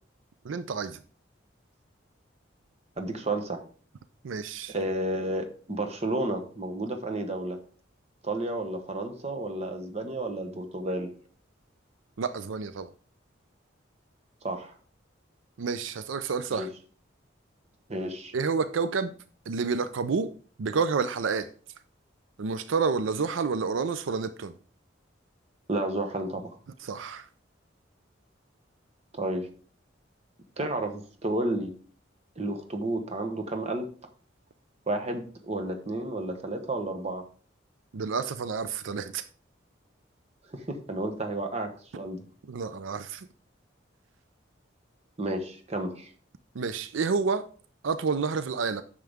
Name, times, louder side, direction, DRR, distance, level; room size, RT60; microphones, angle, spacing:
voice 1, 0.4-1.0 4.2-4.8 12.2-12.9 15.6-16.7 18.3-19.1 19.5-20.3 20.6-21.5 22.4-24.5 26.8-27.3 37.9-39.2 42.5-43.3 46.5-47.4 47.8-48.8, right 5 dB, 80° right, 0.5 m, -29 dB
voice 2, 3.0-3.6 4.7-7.6 8.2-11.1 14.4-14.7 16.5-16.7 17.9-18.3 25.7-26.6 29.1-29.5 30.6-31.7 32.4-33.9 34.9-37.2 40.5-41.7 42.0-42.2 45.2-46.1, right 1 dB, 35° right, 1.1 m, -31 dB
9.3 x 6.6 x 3.5 m
head